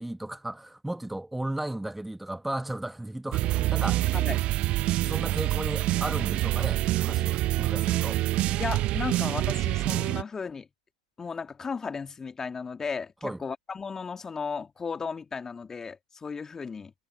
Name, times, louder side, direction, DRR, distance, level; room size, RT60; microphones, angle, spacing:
voice 1, 0.0-4.1 5.1-8.2 13.2-13.4, right 1 dB, 5° right, 2.2 m, -35 dB
sound 1, 3.3-10.2, right 16 dB, 35° right, 1.0 m, -26 dB
voice 2, 8.6-10.7 11.2-16.9, left 5 dB, 15° left, 2.0 m, -35 dB
figure-of-eight pair, 105°, 3 cm